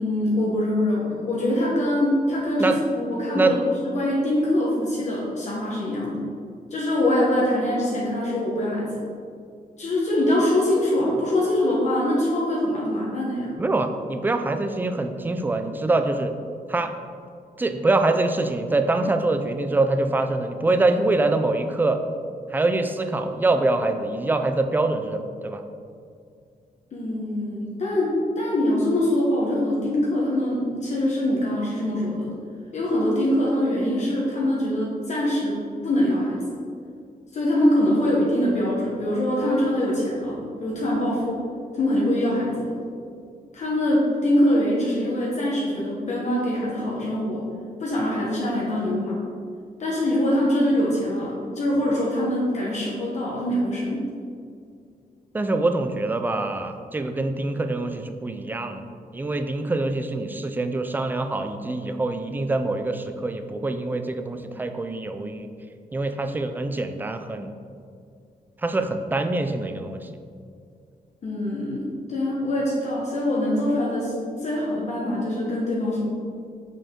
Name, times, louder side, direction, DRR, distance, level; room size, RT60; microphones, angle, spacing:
voice 1, 0.0-3.6 3.8-6.2 6.7-8.9 9.8-13.5 26.9-32.3 32.7-35.6 35.8-36.4 37.3-41.4 41.7-42.7 43.5-47.4 47.8-49.2 49.8-54.0 71.2-74.1 74.4-76.0, left 1 dB, 50° left, -5 dB, 1.1 m, -23 dB
voice 2, 13.6-16.3 16.7-16.9 17.6-22.0 22.5-25.6 55.3-58.8 59.1-65.5 65.9-67.5 68.6-70.0, right 2 dB, 10° right, 7 dB, 0.3 m, -24 dB
6.4 x 5.2 x 3.7 m, 2.3 s
wide cardioid pair, 175°, 16 cm